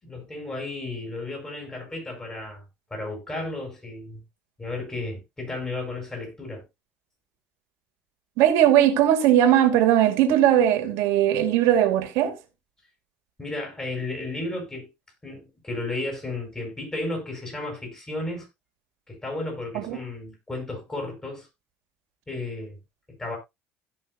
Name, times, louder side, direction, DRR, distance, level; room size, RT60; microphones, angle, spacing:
voice 1, 0.0-2.6 2.9-4.2 4.6-6.6 13.4-14.9 15.2-18.5 19.1-21.5 22.3-22.8 23.1-23.4, left 2 dB, 15° left, 7.1 m, -33 dB
voice 2, 8.4-12.4 19.7-20.0, right 11 dB, 80° right, 2.5 m, -19 dB
16.0 x 6.2 x 2.7 m
cardioid pair, 130°, 5 cm